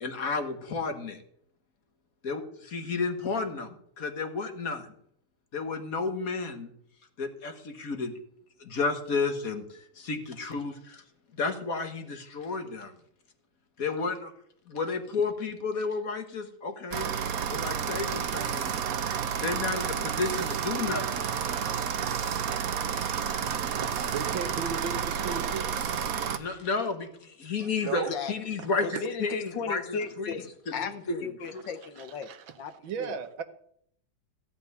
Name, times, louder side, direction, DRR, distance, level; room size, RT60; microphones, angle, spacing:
voice 1, 0.0-1.2 2.2-4.9 5.5-6.7 7.2-8.1 8.6-11.0 11.3-12.9 13.8-14.3 14.7-17.1 17.5-18.8 19.4-21.3 26.3-28.9 29.2-30.4 30.8-31.3, left 4 dB, 50° left, 6 dB, 1.7 m, -32 dB
sound 1, 16.9-26.4, right 8 dB, 55° right, 1.1 m, -30 dB
voice 2, 22.9-23.4 23.8-25.9 27.6-28.1 28.9-29.0 32.0-32.4 32.8-33.4, right 6 dB, 80° right, 9 dB, 1.8 m, -36 dB
voice 3, 28.1-32.3 32.6-32.7 33.0-33.2, left 6 dB, 70° left, 9 dB, 1.7 m, -36 dB
15.5 x 5.6 x 9.5 m, 0.69 s
omnidirectional pair, 2.1 m